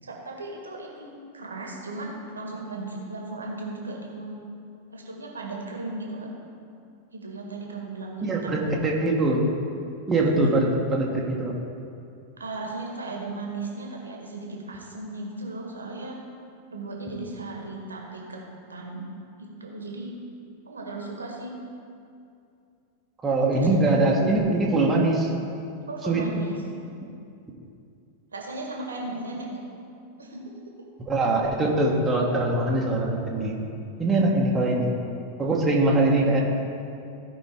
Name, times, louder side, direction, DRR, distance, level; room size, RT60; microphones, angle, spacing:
voice 1, 0.0-4.4 4.9-6.3 7.1-8.5 10.1-10.3 12.4-16.2 16.7-18.4 18.7-19.0 19.4-20.1 20.6-21.5 23.5-23.7 25.9-26.6 28.3-29.6 30.2-30.4, right 2 dB, 75° right, 0 dB, 1.5 m, -36 dB
voice 2, 8.2-9.4 10.1-11.5 23.2-25.3 26.0-26.3 31.1-33.6 34.0-34.9 35.4-36.4, right 2 dB, 15° right, -3 dB, 1.3 m, -22 dB
15.5 x 5.3 x 3.6 m, 2.5 s
figure-of-eight pair, 90°, 0 cm